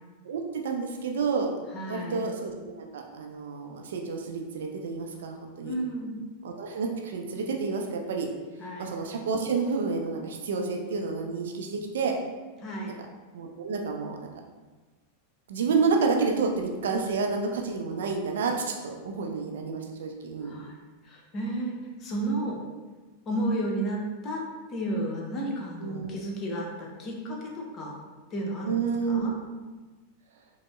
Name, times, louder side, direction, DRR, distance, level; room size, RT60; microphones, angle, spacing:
voice 1, 0.2-1.5 1.9-5.8 6.4-8.3 8.8-12.2 12.9-13.0 13.3-14.3 15.5-20.5 25.8-26.2 28.6-29.3, right 4 dB, 70° right, 2 dB, 0.4 m, -29 dB
voice 2, 1.7-2.3 5.6-6.2 8.6-8.9 12.6-12.9 20.4-20.8 21.0-22.6 23.3-24.4 24.7-27.9 28.3-28.8 29.0-29.3, right 1 dB, 35° left, -1 dB, 0.7 m, -32 dB
5.0 x 2.0 x 2.3 m, 1.3 s
figure-of-eight pair, 90°, 0 cm